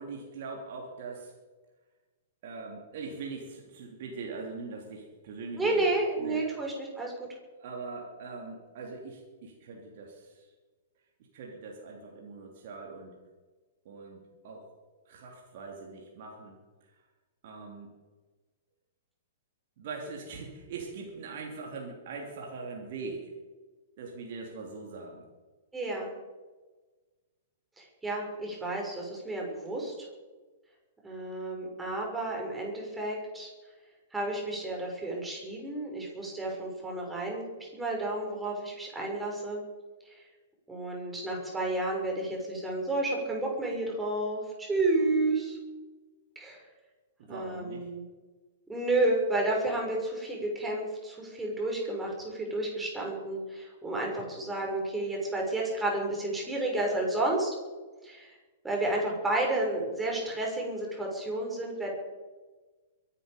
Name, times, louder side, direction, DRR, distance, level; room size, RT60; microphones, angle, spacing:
voice 1, 0.0-1.3 2.4-6.4 7.6-10.5 11.3-13.2 13.8-14.7 15.1-16.6 17.4-17.9 19.8-23.3 24.0-25.3 47.2-47.9, right 4 dB, 55° right, 0 dB, 3.1 m, -42 dB
voice 2, 5.6-7.1 25.7-26.1 27.8-30.1 31.0-33.5 34.1-37.4 37.7-39.6 40.1-40.2 40.7-45.6 46.3-46.6 47.3-48.0 48.7-57.5 58.0-58.3 58.6-61.9, right 2 dB, 10° right, -1 dB, 6.3 m, -31 dB
23.0 x 12.0 x 5.3 m, 1.3 s
figure-of-eight pair, 110°, 0 cm